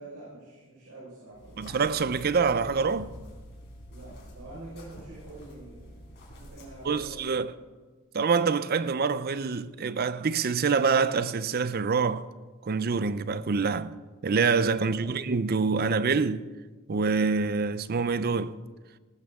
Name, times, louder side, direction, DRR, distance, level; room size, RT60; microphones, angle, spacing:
voice 1, 0.0-1.7 3.9-6.0 6.3-7.5 14.8-15.1, right 2 dB, 85° right, 4.9 m, -46 dB
sound 1, 1.3-7.1, equal, 50° left, 4.5 m, -47 dB
voice 2, 1.6-3.1 6.9-7.5 8.1-12.3 12.6-14.0 14.2-16.5 16.9-18.6, right 5 dB, 45° right, 0.5 m, -26 dB
19.0 x 13.5 x 3.6 m
head